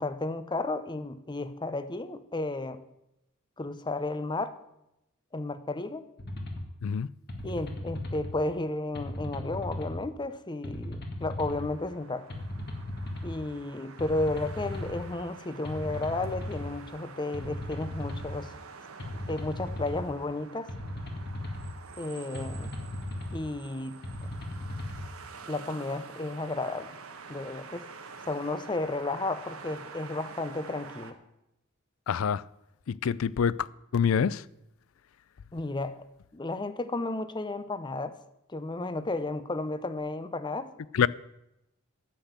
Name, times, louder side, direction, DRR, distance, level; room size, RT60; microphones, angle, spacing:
voice 1, 0.0-2.8 3.6-4.6 5.3-6.1 7.4-12.3 13.2-18.5 19.3-20.7 22.0-22.7 23.3-24.0 25.5-27.0 27.3-27.9 28.3-31.2 35.5-36.0 36.3-38.2 38.5-40.7, left 2 dB, 20° left, 0.6 m, -33 dB
sound 1, 6.2-6.6 7.3-8.3 8.9-10.0 10.6-11.7 12.3-13.3 14.0-15.0 15.6-16.7 17.3-18.4 19.0-20.0 20.7-21.7 22.3-23.4 24.0-25.1, left 1 dB, 50° left, 1.9 m, -36 dB
sound 2, 11.4-31.1, right 5 dB, 75° right, 1.2 m, -47 dB
voice 2, 32.1-32.4 32.9-33.5 33.9-34.4 40.9-41.1, left 7 dB, 65° left, 0.4 m, -25 dB
10.0 x 8.1 x 8.0 m
head